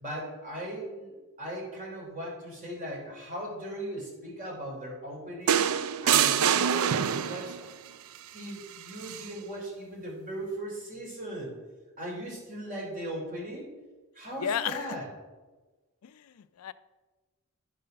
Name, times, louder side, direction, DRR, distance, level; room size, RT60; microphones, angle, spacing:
voice 1, 0.0-5.6 6.0-7.6 8.3-11.5 12.0-13.7 14.1-15.1, right 1 dB, 40° right, -2 dB, 3.1 m, -38 dB
sound 1, 5.5-7.6 9.0-9.2, right 8 dB, 75° right, 0.4 m, -25 dB
voice 2, 14.4-15.0 16.0-16.7, left 8 dB, 85° left, 14 dB, 0.4 m, -33 dB
11.0 x 5.3 x 5.6 m, 1.3 s
head